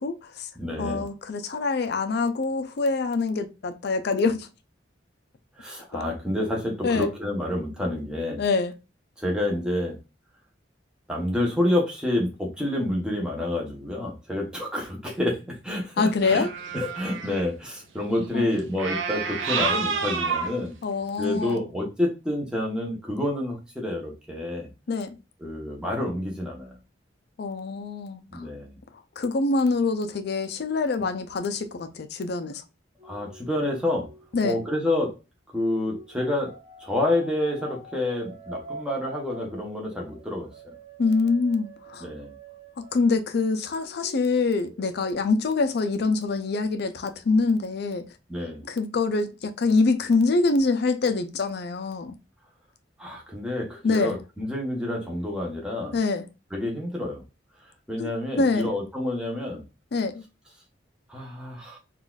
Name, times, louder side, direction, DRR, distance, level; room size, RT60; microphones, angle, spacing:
voice 1, 0.0-0.5 0.8-4.5 6.8-7.1 8.4-8.7 16.0-16.5 18.3-18.4 20.8-21.6 24.9-25.2 27.4-28.5 29.2-32.6 34.3-34.6 41.0-42.1 42.8-48.1 48.6-52.2 53.8-54.2 55.9-56.3 58.0-58.1 58.4-58.7 59.9-60.2, left 3 dB, 60° left, 0.5 m, -25 dB
voice 2, 0.6-1.0 5.6-8.4 9.2-10.0 11.1-16.5 16.7-20.7 21.2-24.7 25.4-26.8 28.3-28.8 33.0-34.1 34.4-35.1 35.5-36.5 36.8-40.8 42.0-42.3 48.3-48.6 53.0-56.0 56.5-57.2 57.9-59.6 61.1-61.8, left 1 dB, 5° right, 0.9 m, -28 dB
sound 1, 16.2-17.4 18.8-20.6 21.4-21.5, right 5 dB, 80° right, 0.6 m, -28 dB
sound 2, 33.0-35.1 35.7-43.4 43.7-45.1, right 1 dB, 45° right, 0.7 m, -45 dB
3.9 x 2.4 x 2.3 m
head